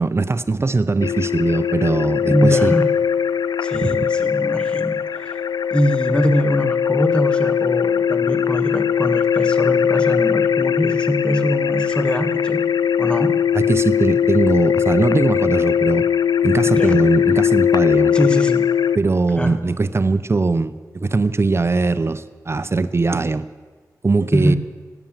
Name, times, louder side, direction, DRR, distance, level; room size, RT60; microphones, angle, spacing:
voice 1, 0.0-2.7 3.7-4.1 13.5-16.1 16.4-18.2 18.9-23.5 24.0-24.6, right 3 dB, 40° right, 14 dB, 0.7 m, -20 dB
sound 1, 1.0-19.0, left 8 dB, 75° left, 0.4 m, -19 dB
voice 2, 2.3-2.9 3.6-12.6 13.0-13.3 16.6-17.0 18.1-18.7 19.4-19.6 24.3-24.6, equal, 15° left, 8 dB, 1.6 m, -22 dB
16.5 x 9.1 x 7.4 m, 1.4 s
cardioid pair, 60°, 7 cm